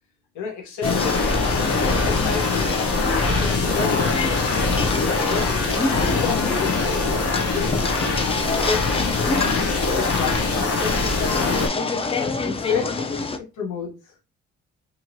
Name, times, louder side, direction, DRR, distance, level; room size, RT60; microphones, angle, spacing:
voice 1, 0.3-2.9 3.2-4.1 5.0-7.3 7.9-9.5 9.9-11.2 12.1-12.9 13.5-14.1, left 6 dB, 80° left, 1.0 m, -31 dB
sound 1, 0.8-11.7, left 3 dB, 50° left, 0.8 m, -23 dB
sound 2, 0.8-13.4, left 4 dB, 20° left, 0.4 m, -28 dB
2.9 x 2.7 x 2.6 m
cardioid pair, 70°, 30 cm